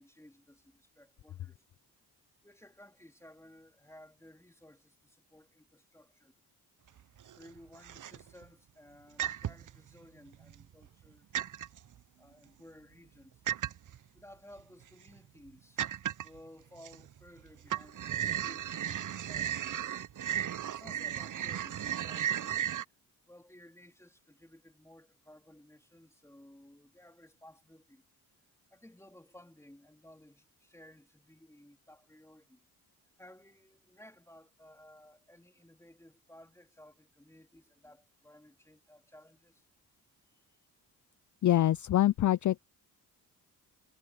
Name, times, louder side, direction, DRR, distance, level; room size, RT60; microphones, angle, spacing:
voice 1, 0.0-1.6 2.4-6.4 7.3-11.3 12.2-13.4 14.1-15.8 16.2-19.8 20.7-22.6 23.2-28.0 28.7-32.7 33.2-39.6 40.3-40.4, left 1 dB, 5° left, 3.8 m, -57 dB
sound 1, 7.0-7.5 7.8-8.4 9.2-9.8 10.3-11.1 11.3-11.8 13.5-14.0 14.6-14.7 15.1-15.2 15.8-16.4 16.8-17.4 17.6-22.8, right 10 dB, 50° right, 0.8 m, -35 dB
voice 2, 41.4-42.6, left 13 dB, 50° left, 0.5 m, -25 dB
cardioid pair, 65°, 39 cm